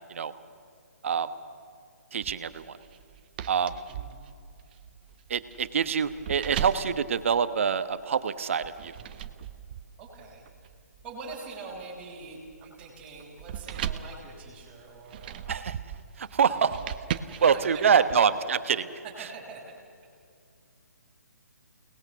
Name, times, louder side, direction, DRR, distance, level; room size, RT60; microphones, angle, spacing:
voice 1, 2.1-2.7 3.5-3.8 5.3-8.9 15.5-15.8 16.2-16.8 17.4-18.9, right 7 dB, 50° right, 12 dB, 1.2 m, -25 dB
sound 1, 2.2-8.0 8.6-18.1, right 9 dB, 35° right, 0.9 m, -39 dB
voice 2, 3.9-4.2 10.0-10.4 11.0-15.7 16.5-16.9 17.2-18.3 19.2-19.6 20.0-20.1, right 4 dB, 15° right, -7 dB, 5.4 m, -44 dB
29.0 x 19.5 x 6.9 m, 2.3 s
figure-of-eight pair, 140°, 9 cm